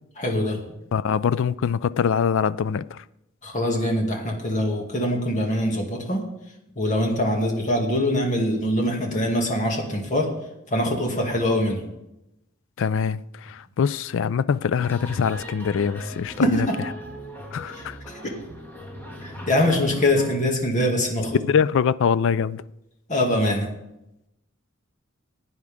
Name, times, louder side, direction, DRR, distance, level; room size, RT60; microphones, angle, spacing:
voice 1, 0.2-0.6 3.4-6.2 6.8-10.3 10.7-11.8 16.4-16.5 18.1-18.2 19.2-21.4 23.1-23.7, left 1 dB, 35° left, 2.2 m, -23 dB
voice 2, 0.9-3.0 12.8-16.7 17.5-18.0 21.4-22.6, left 7 dB, 60° left, 0.4 m, -23 dB
sound 1, 14.8-20.4, equal, 10° left, 1.8 m, -38 dB
16.0 x 9.4 x 3.6 m
head